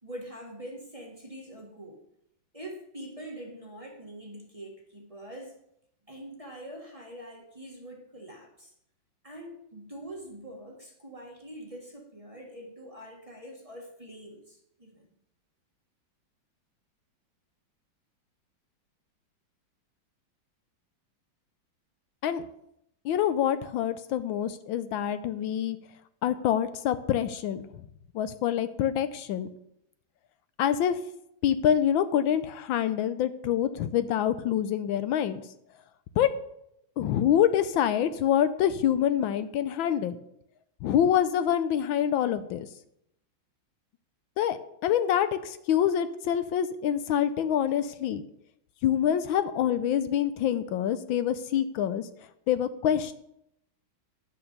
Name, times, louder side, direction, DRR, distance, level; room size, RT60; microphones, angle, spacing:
voice 1, 0.0-2.0 2.5-5.5 6.1-8.7 9.2-15.1, right 1 dB, 20° right, 0 dB, 1.4 m, -44 dB
voice 2, 23.0-25.8 26.2-27.7 28.1-29.5 30.6-31.0 31.4-35.4 36.2-36.3 37.0-40.2 40.8-42.7 44.4-48.2 48.8-52.1 52.5-53.2, left 10 dB, 80° left, 12 dB, 1.4 m, -26 dB
10.5 x 5.8 x 6.7 m, 0.76 s
omnidirectional pair, 2.2 m